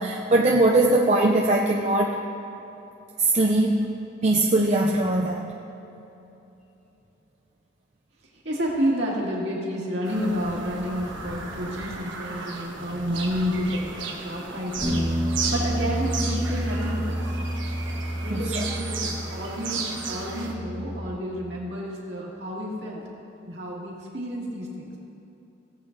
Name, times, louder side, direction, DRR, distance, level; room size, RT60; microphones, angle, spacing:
voice 1, 0.0-2.2 3.2-3.9 4.2-5.5 18.3-18.6, right 2 dB, 35° right, -1 dB, 0.5 m, -21 dB
voice 2, 8.4-17.2 18.2-23.0 23.5-24.9, equal, 60° right, -4 dB, 2.2 m, -30 dB
Bird vocalization bird call bird song, 10.0-20.5, right 4 dB, 75° right, 1.3 m, -35 dB
sound 1, 14.8-21.1, right 1 dB, 5° left, 1.5 m, -29 dB
17.5 x 8.1 x 2.7 m, 3.0 s
head